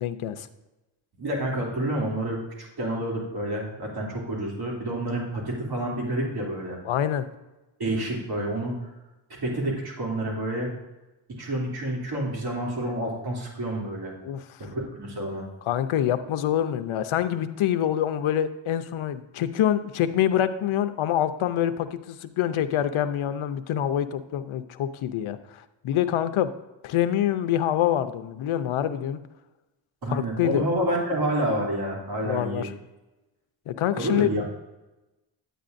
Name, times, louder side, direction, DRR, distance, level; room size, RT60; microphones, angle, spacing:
voice 1, 0.0-0.5 6.8-7.3 14.2-14.4 15.7-26.5 26.8-29.2 30.1-30.6 32.2-32.7 33.7-34.3, left 11 dB, 85° left, 10 dB, 0.7 m, -26 dB
voice 2, 1.2-6.8 7.8-8.9 9.4-10.7 11.3-14.1 14.6-15.4 30.0-32.7 34.0-34.4, right 1 dB, 50° right, -3 dB, 2.9 m, -29 dB
10.0 x 9.1 x 2.6 m, 1.0 s
cardioid pair, 95°, 47 cm